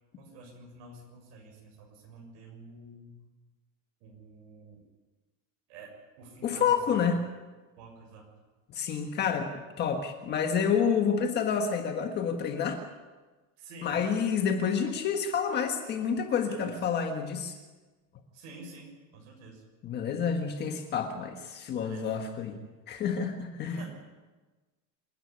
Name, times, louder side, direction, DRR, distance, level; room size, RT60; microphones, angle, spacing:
voice 1, 0.2-3.2 4.0-4.8 5.7-7.1 7.8-8.3 9.2-9.4 13.6-14.0 16.5-16.7 18.3-19.6 21.8-22.1 23.6-23.9, right 3 dB, 60° right, -1 dB, 6.8 m, -49 dB
voice 2, 6.4-7.2 8.7-12.8 13.8-17.6 19.8-22.6 22.9-23.8, left 6 dB, 25° left, 5 dB, 1.6 m, -29 dB
27.5 x 10.0 x 9.8 m, 1.3 s
cardioid pair, 180°, 37 cm